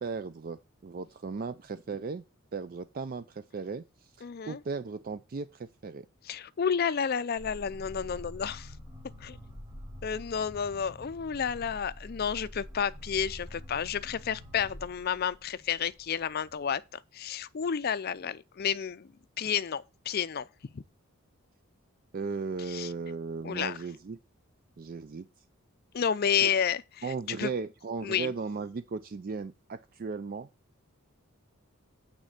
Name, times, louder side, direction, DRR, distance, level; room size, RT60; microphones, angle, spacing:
voice 1, 0.0-2.2 2.5-6.1 22.1-24.2 24.8-25.3 26.4-26.5 27.0-30.5, right 4 dB, 40° right, 0.4 m, -36 dB
voice 2, 4.2-4.6 6.3-8.7 9.2-9.4 10.0-19.1 19.4-20.5 20.7-20.8 22.7-22.9 23.4-23.8 25.9-26.8 27.3-27.5 28.0-28.3, left 7 dB, 45° left, 0.4 m, -31 dB
sound 1, 7.4-16.5, equal, 25° right, 4.5 m, -46 dB
8.9 x 4.3 x 6.6 m
head